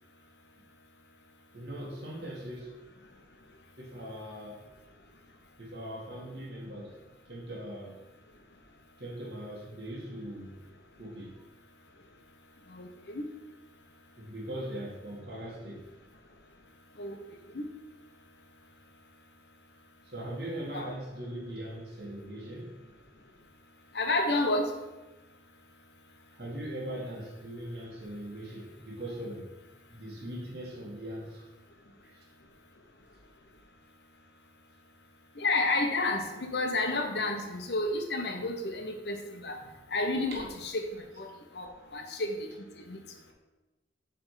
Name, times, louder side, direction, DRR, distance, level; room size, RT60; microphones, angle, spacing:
voice 1, 1.5-2.8 3.1-3.2 3.8-4.6 5.6-7.0 7.3-8.0 9.0-10.5 11.0-11.4 14.2-15.9 20.1-22.8 26.3-29.5 29.9-31.5 32.0-32.3 40.3-40.4, right 1 dB, 60° right, -2 dB, 1.8 m, -40 dB
voice 2, 23.9-24.7 35.4-39.6 39.9-40.7 41.0-41.3 41.6-42.5 42.9-43.0, left 2 dB, 65° left, 4 dB, 0.9 m, -30 dB
7.5 x 3.5 x 4.9 m, 1.1 s
head